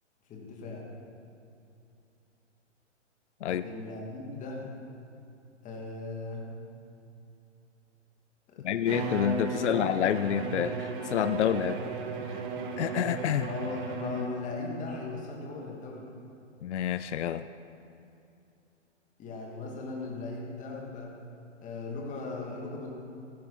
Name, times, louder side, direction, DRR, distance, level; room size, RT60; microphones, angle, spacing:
voice 1, 0.3-0.8 3.5-4.6 5.6-6.5 8.5-8.6 9.5-9.8 13.4-16.1 19.2-21.1 21.6-22.9, left 3 dB, 20° left, -1 dB, 2.4 m, -38 dB
voice 2, 8.6-11.8 12.8-13.5 16.6-17.5, left 10 dB, 70° left, 13 dB, 0.5 m, -28 dB
Bowed string instrument, 8.8-14.5, right 4 dB, 45° right, 1.6 m, -35 dB
15.0 x 14.0 x 4.3 m, 2.7 s
hypercardioid pair, 130°, 36 cm